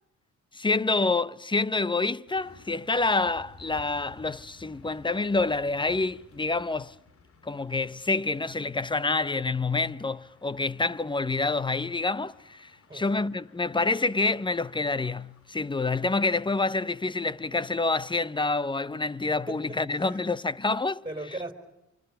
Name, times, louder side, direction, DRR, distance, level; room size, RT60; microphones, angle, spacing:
voice 1, 0.5-6.9 7.4-21.0, left 3 dB, 15° left, 0.8 m, -27 dB
sound 1, 2.3-18.1 18.4-18.6, left 4 dB, 50° left, 3.1 m, -56 dB
voice 2, 19.5-20.3 21.0-21.5, right 1 dB, 15° right, 5.4 m, -38 dB
27.0 x 25.0 x 6.8 m
cardioid pair, 90°, 30 cm